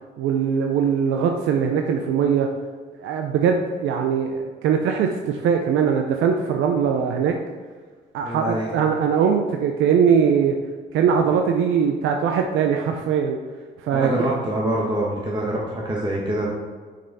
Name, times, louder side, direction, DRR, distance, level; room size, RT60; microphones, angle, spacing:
voice 1, 0.2-2.5 3.0-7.3 8.1-10.5 10.9-13.4 13.8-14.2, right 7 dB, 90° right, 3 dB, 0.6 m, -21 dB
voice 2, 8.2-8.7 13.9-16.5, right 1 dB, 25° right, -4 dB, 1.4 m, -25 dB
6.8 x 6.3 x 4.1 m, 1.5 s
cardioid pair, 90°, 20 cm